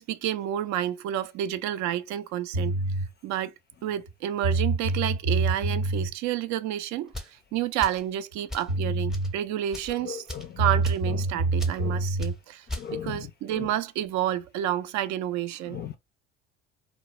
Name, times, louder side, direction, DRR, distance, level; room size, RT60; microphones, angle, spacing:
voice 1, 0.0-2.7 3.2-3.5 3.8-10.3 10.6-12.7 12.9-15.8, right 11 dB, 55° right, 0.4 m, -30 dB
sound 1, 2.5-3.1 4.1-4.2 4.4-6.1 8.3-8.4 8.7-9.3 10.6-12.3, right 2 dB, 85° right, 0.9 m, -26 dB
sound 2, 7.1-7.4 7.8-8.1 8.5-8.7 9.1-9.3 9.7-9.9 10.3-10.5 10.8-11.1 11.6-11.8 12.2-12.3 12.7-12.9, left 1 dB, ahead, 0.7 m, -37 dB
voice 2, 10.1-10.4 11.8-11.9 12.8-13.2 13.6-13.7 15.7-16.0, left 9 dB, 30° left, 0.4 m, -36 dB
2.3 x 2.1 x 2.8 m
hypercardioid pair, 65°, 34 cm